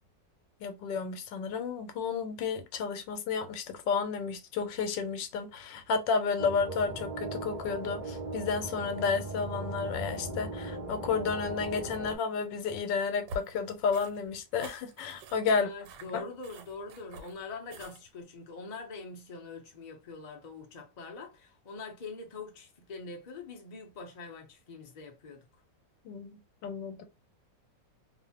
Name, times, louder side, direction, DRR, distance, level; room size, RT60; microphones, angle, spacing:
voice 1, 0.6-15.7 16.1-16.2 26.0-27.0, left 5 dB, 85° left, 1.3 m, -32 dB
sound 1, 6.4-12.2, right 2 dB, 65° right, 0.4 m, -38 dB
sound 2, 13.3-18.2, right 1 dB, 90° right, 1.4 m, -47 dB
voice 2, 15.5-25.6, left 4 dB, 60° left, 0.4 m, -44 dB
2.9 x 2.1 x 2.8 m
omnidirectional pair, 2.0 m